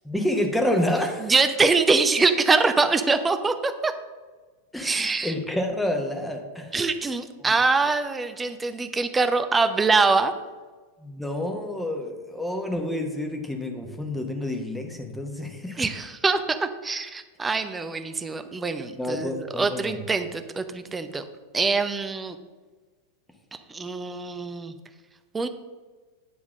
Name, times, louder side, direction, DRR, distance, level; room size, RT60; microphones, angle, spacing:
voice 1, 0.0-1.3 4.7-6.7 7.5-7.6 11.0-15.8 19.0-20.0, left 1 dB, 5° left, 3 dB, 1.1 m, -28 dB
voice 2, 1.2-3.9 4.8-5.3 6.7-10.3 15.8-21.2 21.5-22.4 23.7-24.7 25.3-25.5, right 4 dB, 15° right, 9 dB, 0.6 m, -24 dB
9.4 x 3.6 x 6.2 m, 1.3 s
figure-of-eight pair, 90°, 0 cm